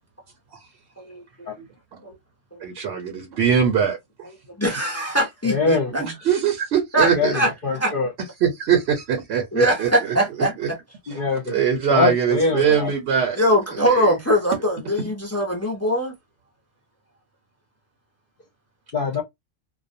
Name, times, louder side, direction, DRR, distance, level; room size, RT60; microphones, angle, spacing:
voice 1, 1.0-1.5 2.0-2.1 2.5-2.7 4.6-6.1 6.9-7.5 7.8-7.9 9.5-10.8 13.4-16.2, equal, 20° left, 0.4 m, -22 dB
voice 2, 2.6-4.0 5.9-7.4 8.4-10.1 10.6-10.7 11.5-13.4 13.9-14.1, right 7 dB, 60° right, 0.8 m, -22 dB
voice 3, 5.4-5.9 7.0-8.1 11.1-11.6 11.9-12.9 18.9-19.2, left 4 dB, 55° left, 0.7 m, -23 dB
2.4 x 2.1 x 2.5 m
omnidirectional pair, 1.3 m